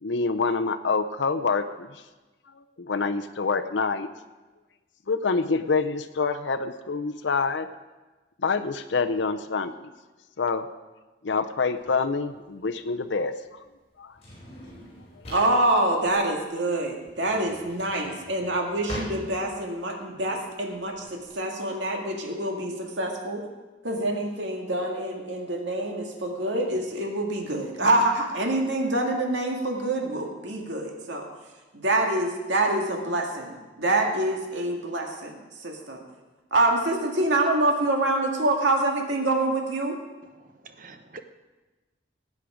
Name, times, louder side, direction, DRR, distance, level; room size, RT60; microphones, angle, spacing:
voice 1, 0.0-2.0 2.5-4.1 5.1-7.7 8.4-9.9 10.4-10.7 11.2-13.6 14.0-14.1, left 4 dB, 80° left, 7 dB, 0.6 m, -26 dB
Drawer open or close, 11.8-21.4, left 1 dB, 35° left, 4.9 m, -43 dB
voice 2, 15.3-23.4 23.8-31.3 31.7-35.4 35.6-36.0 36.5-39.9, right 2 dB, 80° right, 1 dB, 2.0 m, -26 dB
voice 3, 40.3-41.2, right 3 dB, 45° right, 8 dB, 0.8 m, -46 dB
18.5 x 8.5 x 5.0 m, 1.2 s
head